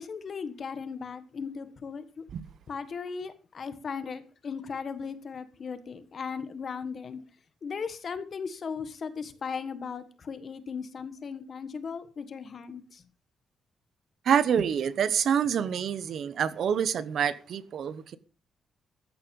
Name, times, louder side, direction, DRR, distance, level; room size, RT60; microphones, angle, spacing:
voice 1, 0.0-2.2 2.7-7.2 7.6-13.0, left 5 dB, 35° left, 1.5 m, -37 dB
voice 2, 14.2-18.2, right 8 dB, 55° right, 0.9 m, -27 dB
14.5 x 10.0 x 5.4 m
wide cardioid pair, 180°, 0 cm